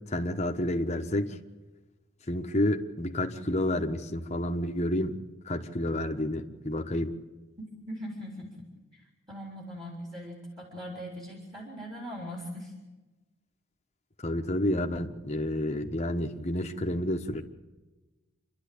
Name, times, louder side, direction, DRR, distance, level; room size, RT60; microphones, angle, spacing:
voice 1, 0.1-1.3 2.3-5.2 5.5-7.1 14.2-17.4, left 1 dB, 30° left, 4 dB, 1.3 m, -29 dB
voice 2, 7.9-8.5 9.0-12.7, equal, 20° right, -1 dB, 3.7 m, -40 dB
28.0 x 12.0 x 8.6 m, 1.2 s
head